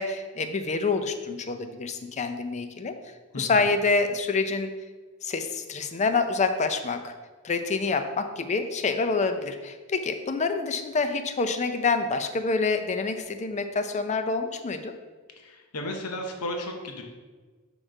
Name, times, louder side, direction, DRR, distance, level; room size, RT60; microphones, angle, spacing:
voice 1, 0.0-2.9 3.4-4.7 5.2-7.1 7.4-14.9, left 4 dB, 30° left, 8 dB, 0.4 m, -27 dB
voice 2, 3.3-3.7 15.4-17.0, left 1 dB, 90° left, 3 dB, 0.8 m, -34 dB
6.4 x 3.1 x 4.9 m, 1.4 s
head